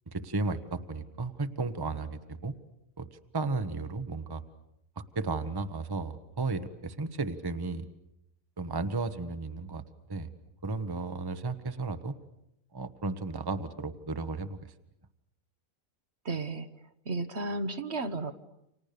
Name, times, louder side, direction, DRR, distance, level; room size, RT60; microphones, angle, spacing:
voice 1, 0.1-2.6 3.0-4.4 5.0-7.9 8.6-9.8 10.1-10.3 10.6-12.2 12.7-14.7, right 3 dB, 20° right, 10 dB, 1.1 m, -34 dB
voice 2, 16.2-18.3, right 2 dB, 55° right, 9 dB, 1.4 m, -34 dB
30.0 x 26.5 x 6.8 m, 0.81 s
omnidirectional pair, 1.4 m